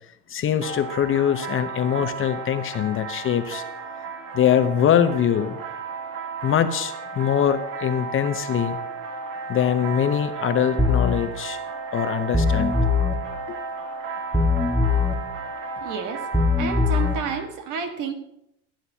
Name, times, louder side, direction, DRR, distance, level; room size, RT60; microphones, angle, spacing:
voice 1, 0.3-3.6 4.3-5.6 6.4-8.8 9.5-11.6 11.9-12.7 13.5-13.6, left 9 dB, 35° left, 10 dB, 0.7 m, -23 dB
sound 1, 0.6-17.5, right 4 dB, 70° right, 1.9 m, -34 dB
sound 2, 10.8-11.1 12.3-13.1 14.3-15.1 16.3-17.1, left 4 dB, 5° left, 1.1 m, -20 dB
voice 2, 15.8-16.3 16.6-18.1, right 6 dB, 55° right, 7 dB, 1.5 m, -30 dB
16.0 x 9.0 x 2.8 m, 0.82 s
hypercardioid pair, 95°, 38 cm